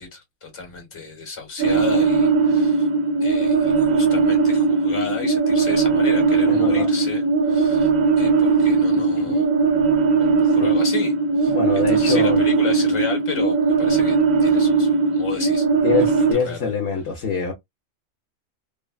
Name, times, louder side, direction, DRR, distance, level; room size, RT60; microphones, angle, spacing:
voice 1, 0.0-2.9 3.2-7.9 8.2-9.5 10.2-15.7 16.3-16.7, left 5 dB, 25° left, 1.1 m, -33 dB
sound 1, 1.6-16.3, right 4 dB, 75° right, 1.4 m, -19 dB
voice 2, 6.5-6.9 8.9-9.4 10.4-10.7 11.5-12.4 15.8-17.5, left 5 dB, 65° left, 0.9 m, -25 dB
3.2 x 2.1 x 2.2 m
omnidirectional pair, 1.4 m